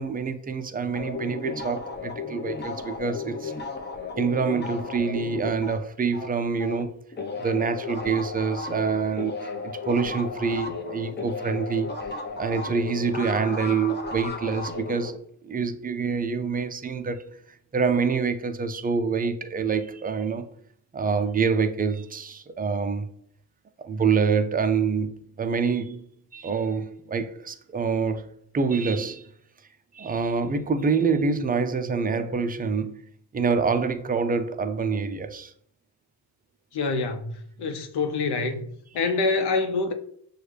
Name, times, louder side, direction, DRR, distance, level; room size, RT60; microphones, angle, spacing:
voice 1, 0.0-3.5 4.2-6.9 7.4-11.9 12.4-17.3 17.7-20.5 20.9-23.1 23.8-26.0 26.3-29.3 29.9-33.0 33.3-35.5 38.9-39.1, right 5 dB, 20° right, 0.4 m, -26 dB
sound 1, 0.9-6.8 7.1-15.1, left 4 dB, 25° left, 0.7 m, -34 dB
voice 2, 36.7-38.7 38.9-39.9, left 3 dB, 55° left, 0.8 m, -26 dB
6.2 x 2.3 x 3.2 m
supercardioid pair, 65°, 46 cm